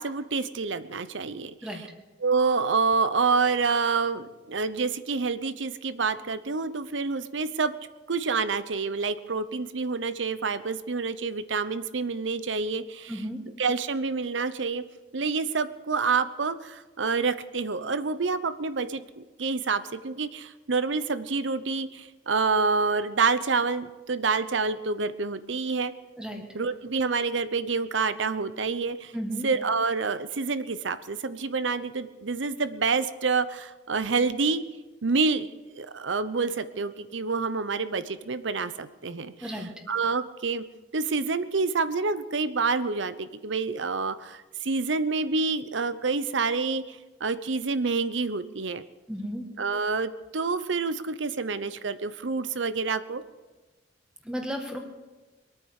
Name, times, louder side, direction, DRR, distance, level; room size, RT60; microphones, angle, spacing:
voice 1, 0.0-1.9 2.2-7.7 8.1-13.2 13.6-14.8 15.1-25.9 26.5-29.1 29.4-34.6 35.0-35.5 35.7-40.6 40.9-48.8 49.6-53.2, right 4 dB, 90° right, 13 dB, 0.8 m, -28 dB
voice 2, 13.1-13.4 26.2-26.4 29.1-29.5 39.4-39.7 49.1-49.5 54.3-54.8, equal, 5° right, 2 dB, 1.8 m, -33 dB
23.0 x 9.2 x 6.5 m, 1.2 s
head